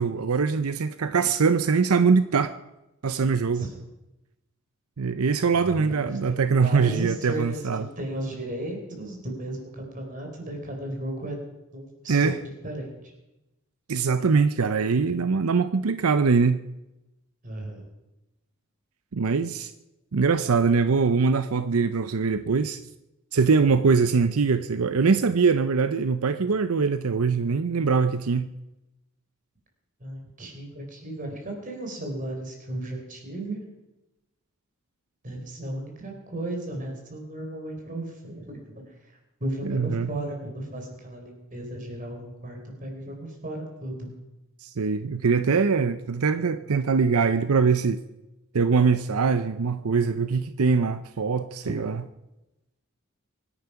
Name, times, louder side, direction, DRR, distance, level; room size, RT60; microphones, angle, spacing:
voice 1, 0.0-2.5 3.0-3.7 5.0-7.8 12.1-12.4 13.9-16.7 19.1-19.7 20.1-22.8 23.3-28.6 39.6-40.1 44.6-48.0 48.5-52.0, right 5 dB, 85° right, 0.6 m, -22 dB
voice 2, 5.5-11.4 11.7-13.0 17.4-17.9 30.0-33.6 35.2-44.1 51.6-51.7, right 1 dB, 40° right, 4.5 m, -35 dB
24.0 x 10.0 x 5.8 m
head